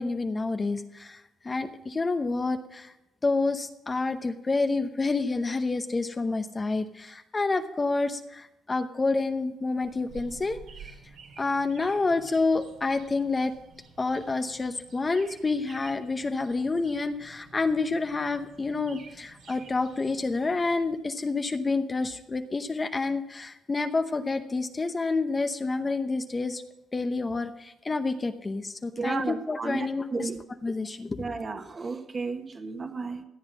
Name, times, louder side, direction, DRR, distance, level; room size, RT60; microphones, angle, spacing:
voice 1, 0.0-2.9 3.2-10.6 11.4-13.5 14.0-26.6 26.9-30.3 30.6-31.3, left 3 dB, 25° left, 0.8 m, -28 dB
sound 1, 9.8-21.0, right 5 dB, 75° right, 2.7 m, -51 dB
voice 2, 29.0-30.4 31.2-33.2, right 4 dB, 35° right, 1.5 m, -33 dB
14.5 x 8.0 x 6.1 m
cardioid pair, 90°, 0 cm